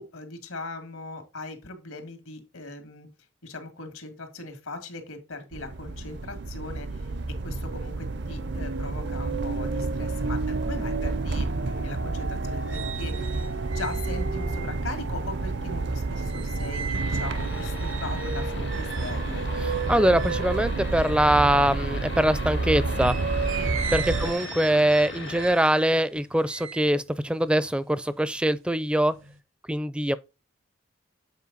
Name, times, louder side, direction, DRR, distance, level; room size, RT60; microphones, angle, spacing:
voice 1, 0.0-3.1 3.4-19.4 23.5-23.8 24.2-24.5, left 2 dB, 90° left, 2.2 m, -39 dB
sound 1, 5.5-24.3, right 3 dB, 55° right, 0.6 m, -29 dB
sound 2, 12.2-22.4 22.9-28.4 28.8-29.4, right 7 dB, 75° right, 0.9 m, -40 dB
sound 3, 16.9-25.5, left 4 dB, 55° left, 0.7 m, -40 dB
voice 2, 19.6-23.1 23.9-29.1 29.7-30.2, right 1 dB, 5° right, 0.4 m, -23 dB
8.4 x 4.6 x 3.9 m
head